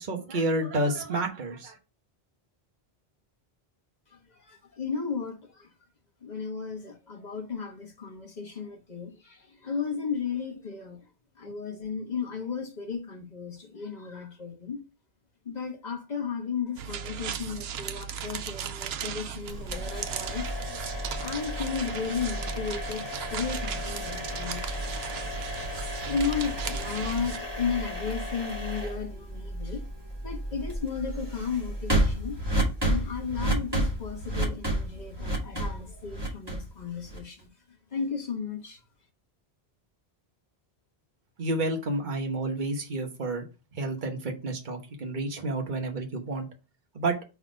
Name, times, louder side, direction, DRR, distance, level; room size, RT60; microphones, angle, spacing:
voice 1, 0.0-1.8 41.4-43.5 43.7-46.5 46.9-47.2, right 2 dB, 50° right, 1.3 m, -30 dB
voice 2, 4.5-5.7 6.2-11.0 11.4-14.8 15.4-20.6 21.2-24.9 26.0-29.8 30.2-32.4 32.8-37.5 37.9-38.8, left 6 dB, 45° left, 1.4 m, -34 dB
sound 1, 16.8-27.4, right 8 dB, 75° right, 0.8 m, -37 dB
sound 2, 19.5-37.4, equal, 25° right, 2.6 m, -32 dB
5.7 x 4.0 x 5.0 m
omnidirectional pair, 1.1 m